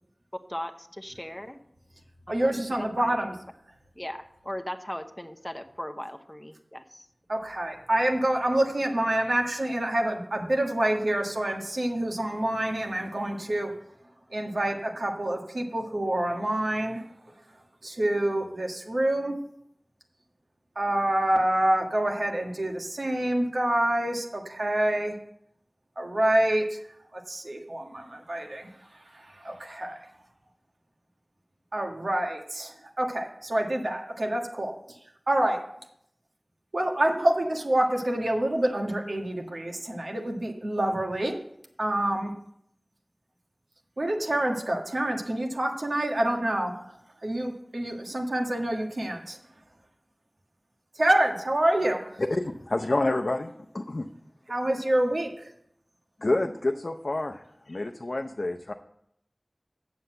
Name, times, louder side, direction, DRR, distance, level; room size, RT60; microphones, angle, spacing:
voice 1, 0.5-1.6 2.4-3.4 4.0-7.1, left 1 dB, 15° left, 7 dB, 0.9 m, -38 dB
voice 2, 2.3-3.3 7.3-13.7 14.3-17.0 17.8-19.4 20.7-25.1 26.0-26.8 27.1-28.7 29.1-30.0 31.7-34.7 35.3-35.6 36.7-41.3 41.8-42.3 44.0-46.7 47.2-49.4 50.9-52.2 54.5-55.5, right 1 dB, 85° right, 1 dB, 1.6 m, -27 dB
voice 3, 52.2-54.1 56.2-58.7, left 2 dB, 65° left, 4 dB, 0.6 m, -28 dB
7.9 x 7.0 x 7.7 m, 0.73 s
wide cardioid pair, 50°, 0 cm